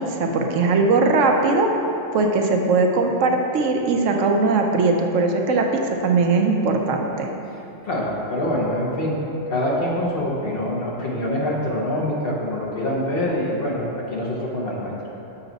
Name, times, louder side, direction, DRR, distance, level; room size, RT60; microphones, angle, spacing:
voice 1, 0.0-1.7 2.1-7.3, right 3 dB, 75° right, 3 dB, 1.0 m, -20 dB
voice 2, 7.8-9.2 9.5-14.9, left 1 dB, 50° left, -3 dB, 1.2 m, -25 dB
7.0 x 5.8 x 4.0 m, 2.8 s
omnidirectional pair, 1.3 m